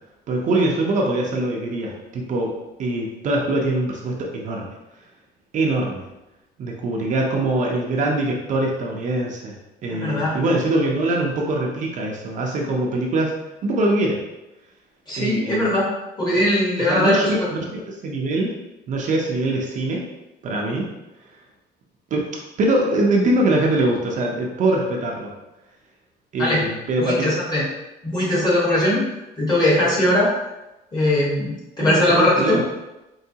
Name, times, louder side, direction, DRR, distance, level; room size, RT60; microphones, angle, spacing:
voice 1, 0.3-2.5 2.8-4.7 5.5-6.0 6.6-9.5 9.8-13.3 13.6-14.2 15.2-15.7 16.9-18.5 18.9-20.0 20.4-20.9 22.1-22.2 22.6-25.3 26.3-27.3 31.8-32.6, right 2 dB, 45° right, -1 dB, 0.6 m, -23 dB
voice 2, 9.9-10.3 15.1-15.9 16.2-17.3 26.4-26.6 27.0-27.6 28.0-29.0 29.4-30.3 30.9-32.6, left 1 dB, 25° left, -6 dB, 1.4 m, -20 dB
4.6 x 3.1 x 2.8 m, 1.0 s
cardioid pair, 160°, 18 cm